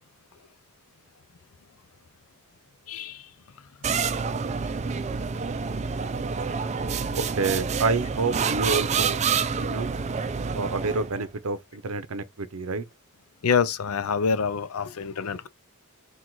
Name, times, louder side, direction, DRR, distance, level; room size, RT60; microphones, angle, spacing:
voice 1, 2.9-3.3 13.4-15.5, left 6 dB, 80° left, 0.5 m, -26 dB
sound 1, 3.8-11.2, right 5 dB, 30° right, 0.4 m, -28 dB
voice 2, 7.1-9.3 9.6-9.9 10.5-12.8, right 4 dB, 75° right, 0.7 m, -28 dB
4.6 x 2.4 x 3.9 m
head